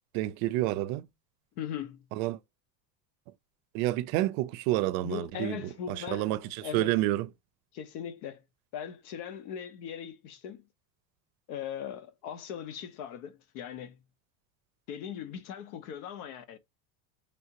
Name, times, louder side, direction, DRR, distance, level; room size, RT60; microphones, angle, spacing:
voice 1, 0.1-1.1 2.2-2.4 3.7-5.6 5.9-6.4 6.7-7.3, right 16 dB, 70° right, 0.5 m, -29 dB
voice 2, 1.6-2.1 5.0-6.9 7.7-8.4 8.7-10.6 11.5-14.0 14.9-16.6, left 8 dB, 75° left, 0.9 m, -39 dB
3.4 x 2.5 x 2.8 m
supercardioid pair, 140°, 44 cm